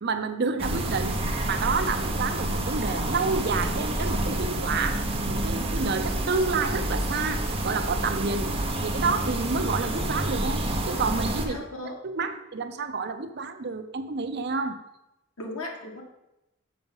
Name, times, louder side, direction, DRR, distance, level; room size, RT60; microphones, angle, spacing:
voice 1, 0.0-1.2 1.5-8.5 8.8-14.8, right 4 dB, 50° right, 8 dB, 0.6 m, -29 dB
sound 1, 0.6-11.5, right 1 dB, 30° right, 1.0 m, -28 dB
voice 2, 11.5-12.3 15.4-16.0, left 2 dB, 90° left, 1 dB, 1.7 m, -37 dB
6.8 x 6.0 x 5.5 m, 0.91 s
head